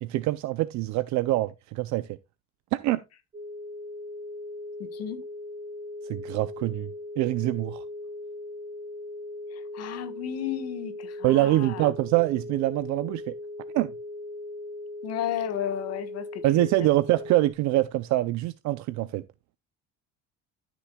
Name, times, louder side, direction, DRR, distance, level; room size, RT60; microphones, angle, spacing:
voice 1, 0.0-2.1 2.7-3.0 6.0-6.9 7.2-7.8 11.2-13.3 13.7-13.9 16.4-19.2, right 17 dB, 65° right, 0.5 m, -25 dB
sound 1, 3.3-17.5, left 2 dB, 25° right, 1.2 m, -39 dB
voice 2, 4.8-5.2 9.5-11.9 15.0-16.9, left 10 dB, 55° left, 1.3 m, -33 dB
13.5 x 6.1 x 2.2 m
cardioid pair, 155°, 31 cm